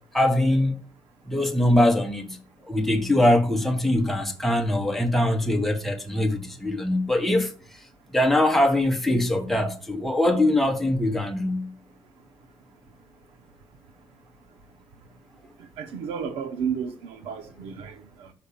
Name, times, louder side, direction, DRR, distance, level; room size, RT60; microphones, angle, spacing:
voice 1, 0.1-0.7 1.3-2.4 2.7-7.5 8.1-11.7, left 1 dB, ahead, 1.2 m, -22 dB
voice 2, 15.8-18.3, right 7 dB, 90° right, 0.8 m, -32 dB
5.8 x 5.7 x 6.8 m
cardioid pair, 160°, 10 cm